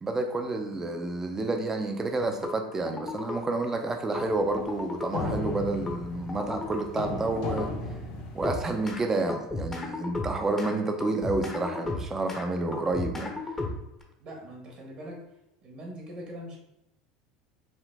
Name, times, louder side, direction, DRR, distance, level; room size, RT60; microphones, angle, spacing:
voice 1, 0.0-7.7 8.3-13.3, right 2 dB, 20° right, 5 dB, 0.6 m, -29 dB
sound 1, 2.4-2.5 2.9-3.4 4.1-4.2 4.6-5.1 5.9-6.0 6.3-6.8 7.4-7.7 8.4-9.0 9.3-10.7 11.0-12.4 12.7-14.0, left 3 dB, 15° left, 0.8 m, -34 dB
sound 2, 4.2-9.0, left 2 dB, 60° left, 1.0 m, -36 dB
voice 2, 14.2-15.2 15.6-16.6, equal, 45° right, -1 dB, 1.4 m, -42 dB
5.1 x 2.5 x 3.5 m, 0.89 s
supercardioid pair, 115°, 2 cm